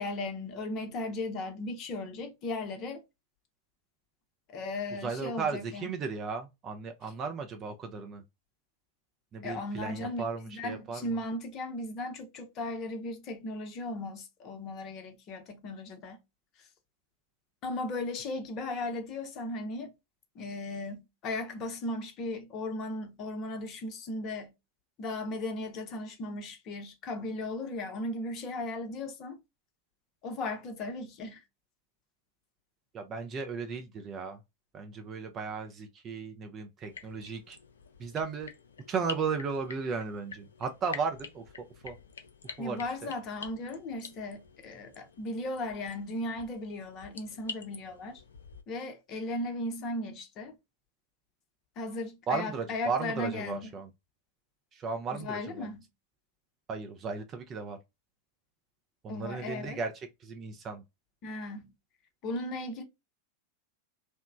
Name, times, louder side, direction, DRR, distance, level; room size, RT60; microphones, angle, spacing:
voice 1, 0.0-3.0 4.5-6.0 7.0-7.1 9.4-16.2 16.6-16.7 17.6-19.9 20.3-24.5 25.0-29.4 30.2-31.4 42.6-48.2 48.7-50.6 51.8-53.8 55.1-55.9 59.1-59.8 61.2-61.7 62.2-62.8, left 2 dB, 35° left, 0.7 m, -36 dB
voice 2, 5.0-8.2 9.3-11.2 32.9-34.4 34.7-37.6 38.0-38.5 38.9-42.0 42.6-42.8 52.3-53.9 54.7-55.7 56.7-57.8 59.0-60.8, right 5 dB, 30° right, 0.4 m, -35 dB
sound 1, 36.8-48.6, left 6 dB, 70° left, 0.4 m, -47 dB
2.9 x 2.1 x 2.4 m
figure-of-eight pair, 90°, 0 cm